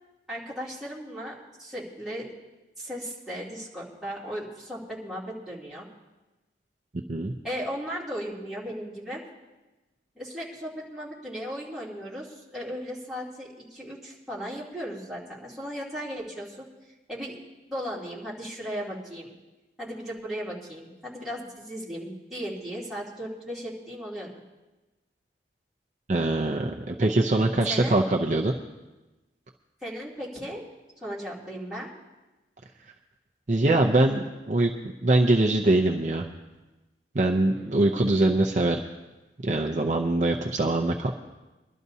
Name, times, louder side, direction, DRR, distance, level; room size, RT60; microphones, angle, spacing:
voice 1, 0.3-2.3 2.8-5.9 7.4-9.2 10.1-16.7 17.1-17.4 17.7-19.3 19.8-24.3 27.7-28.0 29.8-30.6 31.0-31.9 37.5-37.9, equal, ahead, -8 dB, 2.9 m, -36 dB
voice 2, 26.1-28.5 33.5-34.7 35.0-36.3 37.1-38.8 39.4-41.1, right 2 dB, 40° right, 2 dB, 0.6 m, -23 dB
23.0 x 12.0 x 2.8 m, 1.1 s
head